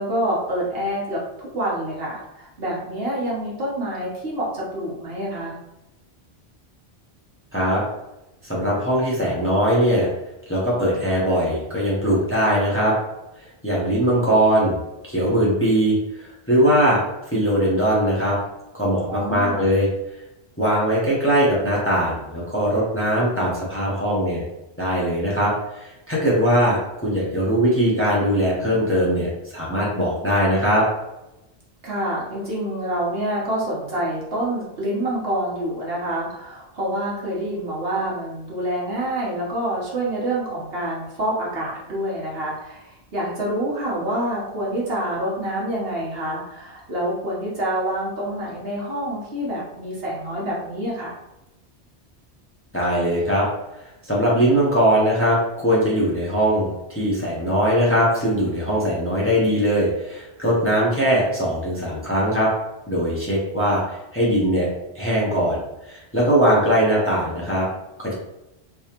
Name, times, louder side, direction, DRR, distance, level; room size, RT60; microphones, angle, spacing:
voice 1, 0.0-5.6 19.1-19.7 31.8-51.2, right 1 dB, 65° right, -5 dB, 1.3 m, -27 dB
voice 2, 8.4-10.1 10.5-12.9 13.4-14.8 15.0-17.0 17.3-18.4 18.7-19.9 20.6-24.4 24.8-30.8 52.7-53.4 53.7-62.5 62.9-64.7 64.9-67.7 68.0-68.1, equal, 15° left, -6 dB, 0.9 m, -20 dB
3.5 x 3.0 x 2.9 m, 0.94 s
omnidirectional pair, 1.1 m